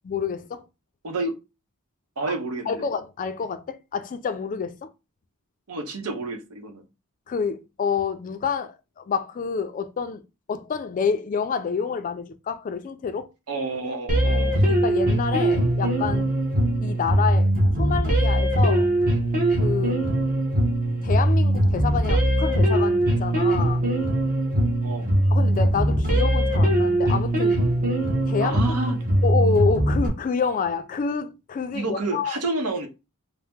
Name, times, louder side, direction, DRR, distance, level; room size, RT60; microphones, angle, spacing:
voice 1, 0.1-0.6 2.7-4.9 7.3-10.2 10.5-13.3 14.7-16.3 16.8-17.5 17.8-18.9 19.6-20.0 21.0-23.8 25.3-27.6 28.3-28.8 29.2-32.3, left 5 dB, 35° left, 0.3 m, -28 dB
voice 2, 1.0-1.3 2.2-2.8 5.7-6.8 13.5-14.7 24.8-25.1 28.4-29.0 31.7-32.9, right 2 dB, 85° right, 0.8 m, -29 dB
sound 1, 14.1-30.1, right 1 dB, 40° right, 0.9 m, -21 dB
2.8 x 2.0 x 3.4 m
head